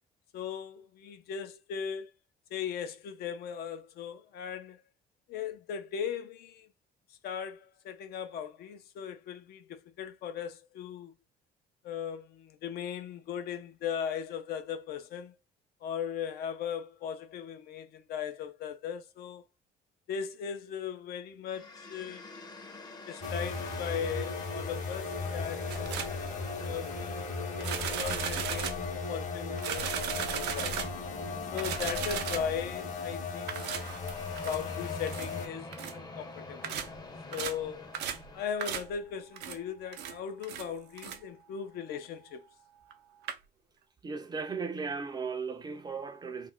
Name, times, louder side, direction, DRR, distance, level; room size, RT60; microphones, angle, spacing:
voice 1, 0.3-2.1 2.5-4.8 5.3-6.7 7.1-11.1 11.8-15.4 15.8-19.4 20.1-22.3 23.1-25.9 26.6-27.3 27.6-30.8 31.5-33.7 34.4-36.8 37.3-38.0 38.3-42.5, left 8 dB, 70° left, 0.5 m, -38 dB
sound 1, 21.5-38.4, left 3 dB, 25° left, 0.6 m, -46 dB
sound 2, 23.2-35.5, left 4 dB, 45° left, 0.9 m, -37 dB
sound 3, 25.7-26.2 27.6-28.9 29.6-31.1 31.6-32.6 33.5-34.6 35.1-35.3 35.7-36.0 36.6-37.0 37.3-37.6 37.9-38.3 38.6-39.0 39.3-39.6 39.9-40.2 40.4-40.7 41.0-41.2 42.9-43.0 43.2-43.3, right 8 dB, 80° right, 0.5 m, -36 dB
voice 2, 44.0-46.5, right 5 dB, 25° right, 0.4 m, -36 dB
2.4 x 2.1 x 3.6 m
cardioid pair, 110°, 17 cm